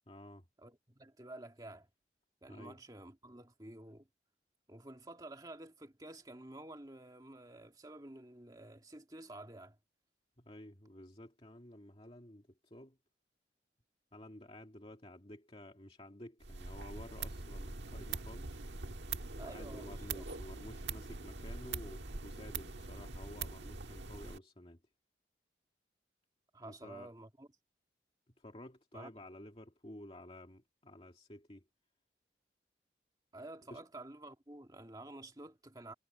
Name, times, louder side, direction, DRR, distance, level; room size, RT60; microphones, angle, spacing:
voice 1, 0.1-0.5 2.5-2.8 10.4-13.0 14.1-18.6 19.4-24.8 26.6-27.1 28.4-31.6 33.7-33.8, left 1 dB, 30° left, 2.2 m, -52 dB
voice 2, 0.6-1.9 2.4-4.1 4.7-9.8 19.4-20.3 26.5-27.5 28.9-29.1 33.3-35.9, right 1 dB, 20° right, 2.0 m, -51 dB
sound 1, 16.4-24.4, right 4 dB, 85° right, 1.6 m, -43 dB
head